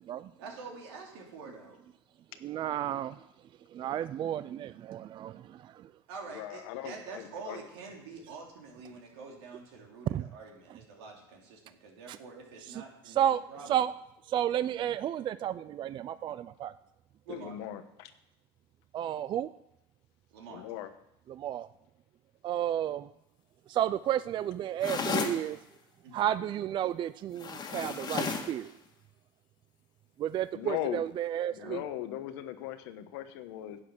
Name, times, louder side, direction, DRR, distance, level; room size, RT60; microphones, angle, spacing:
voice 1, 0.4-1.8 6.1-13.8 17.3-17.6 20.3-20.6 26.0-26.3 30.9-31.0 31.5-31.8, right 4 dB, 85° right, 0 dB, 3.1 m, -46 dB
voice 2, 2.4-3.1 3.7-5.9 10.1-10.3 12.1-12.2 13.1-13.4 13.7-13.9 14.3-16.7 18.9-19.5 21.3-21.7 22.4-23.1 23.7-25.6 26.1-28.7 30.2-31.8, right 11 dB, 40° right, 15 dB, 0.4 m, -32 dB
voice 3, 6.3-7.6 17.3-18.1 20.5-20.9 30.5-31.0 31.6-33.8, left 13 dB, 80° left, 10 dB, 1.1 m, -38 dB
sound 1, 24.8-25.4 27.4-28.6, left 5 dB, 30° left, 1.7 m, -33 dB
11.0 x 8.5 x 6.1 m, 0.85 s
supercardioid pair, 105°, 13 cm